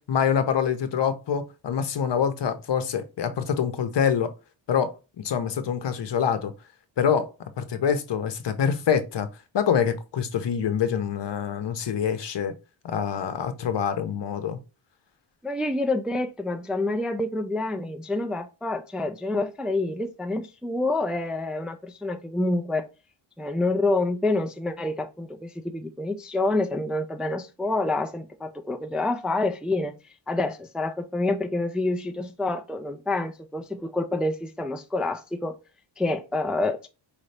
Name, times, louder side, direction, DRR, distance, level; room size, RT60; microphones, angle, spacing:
voice 1, 0.0-4.3 4.7-6.5 7.0-9.3 9.5-12.5 12.8-14.6, left 7 dB, 60° left, 0.9 m, -25 dB
voice 2, 15.4-22.9 23.4-29.9 30.3-35.5 36.0-36.9, left 2 dB, ahead, 0.4 m, -27 dB
5.0 x 2.7 x 3.2 m
wide cardioid pair, 140°, 48 cm